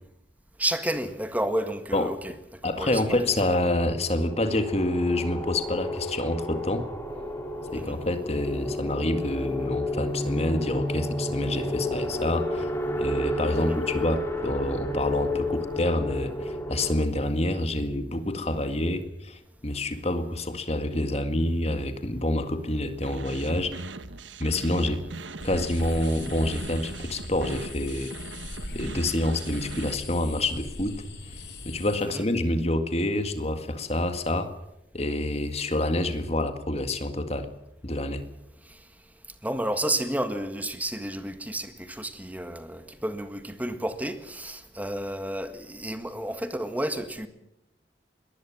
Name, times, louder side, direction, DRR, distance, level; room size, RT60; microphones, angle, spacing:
voice 1, 0.6-2.3 2.6-3.5 7.7-8.0 13.6-13.8 32.0-32.2 39.4-47.3, right 1 dB, 10° right, 1.7 m, -31 dB
voice 2, 2.6-6.9 7.7-12.7 13.0-23.7 24.4-25.0 25.4-28.1 28.7-31.0 31.6-34.5 34.9-37.5 37.8-38.2, left 1 dB, 35° left, 1.9 m, -27 dB
sound 1, 2.9-17.1, left 1 dB, 15° left, 2.9 m, -31 dB
sound 2, 23.0-29.9, right 3 dB, 90° right, 1.3 m, -40 dB
sound 3, 25.4-32.0, left 2 dB, 65° left, 4.7 m, -41 dB
22.0 x 19.0 x 7.3 m
head